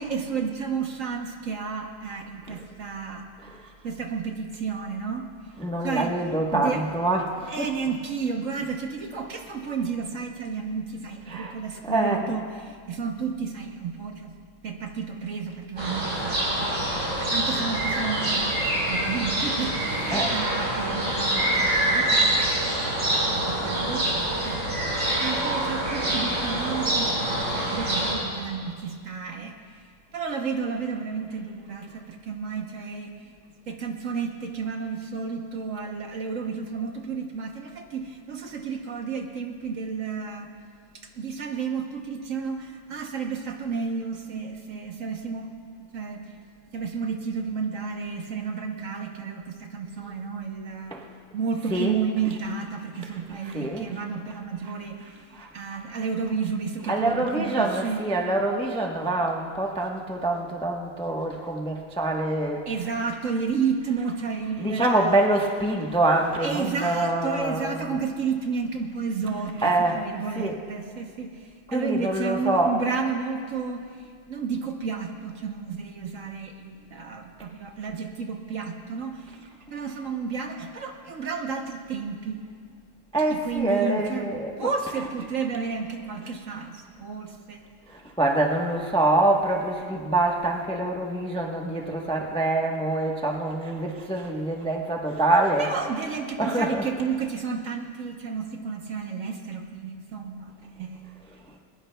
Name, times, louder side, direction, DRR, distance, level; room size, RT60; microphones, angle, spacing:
voice 1, 0.0-3.3 3.8-5.3 5.8-6.9 7.5-14.3 14.6-16.7 17.2-23.0 23.4-29.8 30.1-33.4 33.7-40.5 41.2-45.5 45.9-46.3 46.7-51.0 51.3-58.0 62.7-65.2 66.4-79.4 79.7-82.4 83.3-84.3 84.6-87.6 95.6-101.1, right 5 dB, 55° right, 3 dB, 1.2 m, -32 dB
voice 2, 5.6-7.7 11.3-11.5 11.8-12.3 20.1-20.3 50.9-51.1 51.7-51.9 53.4-53.9 55.3-55.8 56.9-62.7 64.6-67.9 69.6-70.0 70.4-70.5 71.7-72.7 83.1-84.5 87.9-95.7 96.4-96.9, right 2 dB, 5° left, 0 dB, 0.6 m, -25 dB
sound 1, 15.8-28.1, right 1 dB, 85° right, 4.7 m, -25 dB
21.5 x 20.0 x 2.3 m, 2.1 s
omnidirectional pair, 1.8 m